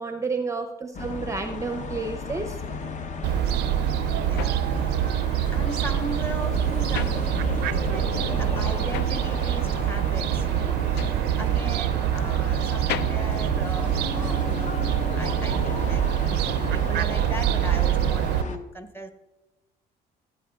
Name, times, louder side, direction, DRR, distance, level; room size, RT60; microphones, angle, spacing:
voice 1, 0.0-2.6, right 4 dB, 15° right, 6 dB, 0.6 m, -31 dB
sound 1, 0.9-18.6, left 4 dB, 45° left, 0.7 m, -34 dB
Fowl, 3.2-18.4, right 12 dB, 80° right, 0.4 m, -25 dB
voice 2, 4.2-4.9 5.5-10.9 11.3-19.1, right 1 dB, 15° left, 7 dB, 1.0 m, -38 dB
sound 2, 4.4-7.9 8.2-14.4, left 11 dB, 80° left, 0.4 m, -39 dB
15.0 x 8.8 x 2.3 m, 1.0 s
cardioid pair, 110°, 17 cm